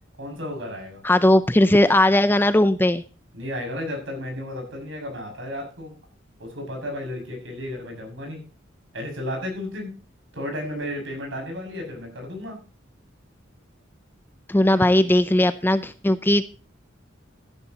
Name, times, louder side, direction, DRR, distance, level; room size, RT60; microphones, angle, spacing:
voice 1, 0.2-1.0 3.3-5.9 6.4-8.4 8.9-9.9 10.3-12.6, left 1 dB, 70° right, 2 dB, 6.3 m, -33 dB
voice 2, 1.0-3.0 14.5-16.4, left 1 dB, 10° left, 12 dB, 0.5 m, -18 dB
15.0 x 11.0 x 2.9 m, 0.35 s
head